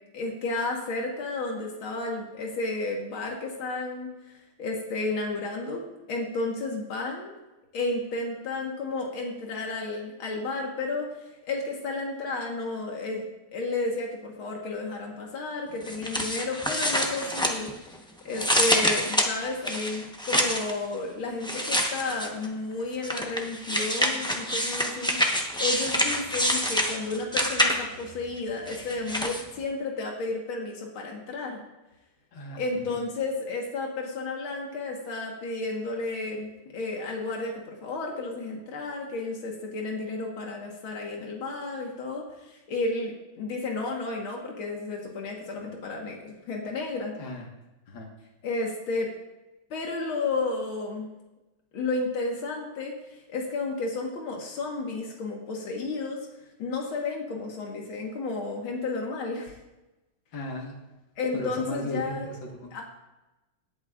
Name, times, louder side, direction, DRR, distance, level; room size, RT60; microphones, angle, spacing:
voice 1, 0.1-5.8 6.1-7.3 7.7-11.1 11.5-17.7 18.2-25.2 25.6-31.6 32.6-47.1 48.4-49.1 49.7-51.1 51.7-56.2 56.6-59.6 61.2-62.3 62.7-62.8, left 3 dB, 90° left, 0 dB, 2.3 m, -32 dB
sound 1, 15.8-18.0 18.3-20.7 21.4-22.5 23.0-28.0 28.7-29.4, equal, 5° left, 0.4 m, -26 dB
voice 2, 32.3-32.6 32.9-33.0 47.2-47.5 47.9-48.1 60.3-60.8 61.3-62.7, left 1 dB, 70° left, 0 dB, 2.4 m, -36 dB
19.0 x 8.8 x 2.5 m, 1.0 s
omnidirectional pair, 2.2 m